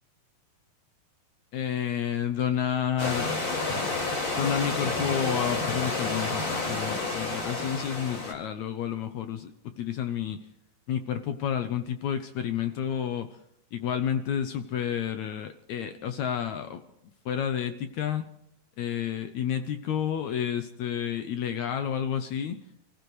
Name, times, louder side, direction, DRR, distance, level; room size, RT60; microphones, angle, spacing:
voice 1, 1.5-3.4 4.3-9.5 9.8-10.4 10.9-13.3 13.7-16.8 17.3-18.3 18.8-22.6, left 9 dB, 75° left, 9 dB, 1.7 m, -30 dB
Stream / Liquid, 3.0-8.3, left 3 dB, 35° left, 5.4 m, -30 dB
29.0 x 15.5 x 3.2 m, 0.79 s
omnidirectional pair, 4.1 m